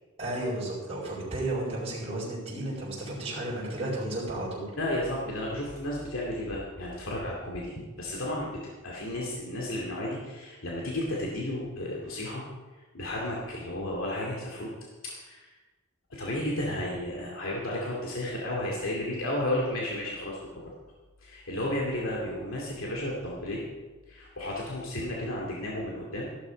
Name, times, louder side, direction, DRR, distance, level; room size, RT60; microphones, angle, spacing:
voice 1, 0.2-4.7, right 1 dB, 30° right, -7 dB, 5.0 m, -33 dB
voice 2, 4.8-12.4 12.9-14.7 15.0-15.5 16.1-20.7 21.2-23.7 24.1-26.3, left 1 dB, 80° left, -3 dB, 2.5 m, -33 dB
14.5 x 12.0 x 5.2 m, 1.3 s
head